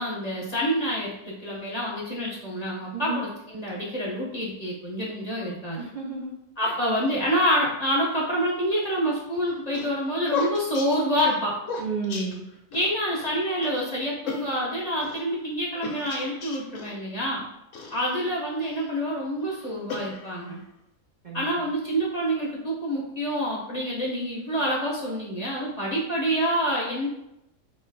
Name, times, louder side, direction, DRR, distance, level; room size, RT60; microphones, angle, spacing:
voice 1, 0.0-5.8 6.6-11.6 12.7-17.4 17.9-20.6 21.3-27.1, equal, 35° left, -4 dB, 0.7 m, -27 dB
voice 2, 5.8-6.3 6.6-6.8 11.8-12.4 21.2-21.6, right 4 dB, 55° right, -3 dB, 0.5 m, -32 dB
sound 1, 9.3-12.9 13.2-13.3 13.6-13.8 14.3-15.2 15.8-17.0 17.7-18.9 19.4-20.6, left 4 dB, 65° left, 1.1 m, -35 dB
3.2 x 2.9 x 4.6 m, 0.86 s
omnidirectional pair, 1.5 m